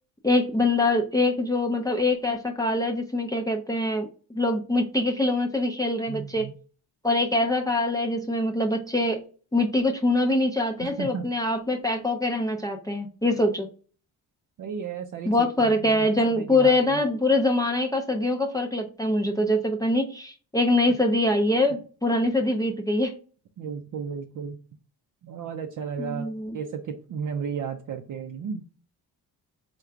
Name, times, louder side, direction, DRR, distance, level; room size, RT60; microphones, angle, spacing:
voice 1, 0.2-6.5 7.0-9.2 9.5-13.7 15.3-23.2 26.0-26.6, left 1 dB, 10° left, 4 dB, 0.4 m, -24 dB
voice 2, 6.1-6.5 10.8-11.3 14.6-17.0 23.6-24.6 25.2-26.3 26.5-28.6, right 6 dB, 50° right, 5 dB, 0.5 m, -34 dB
3.8 x 2.3 x 4.5 m, 0.39 s
cardioid pair, 110°, 40 cm